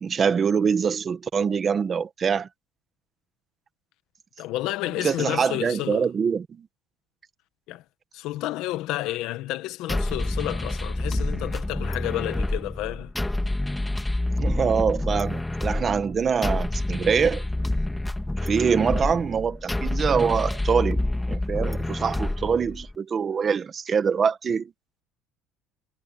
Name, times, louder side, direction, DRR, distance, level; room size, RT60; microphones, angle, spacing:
voice 1, 0.0-2.5 5.0-6.7 14.4-17.4 18.4-21.0 21.3-24.7, right 6 dB, 25° right, 1.4 m, -24 dB
voice 2, 4.4-6.1 7.7-7.8 8.1-13.1, left 16 dB, 65° left, 1.5 m, -31 dB
sound 1, 9.9-22.9, left 1 dB, 5° left, 1.5 m, -28 dB
cardioid pair, 160°, 0 cm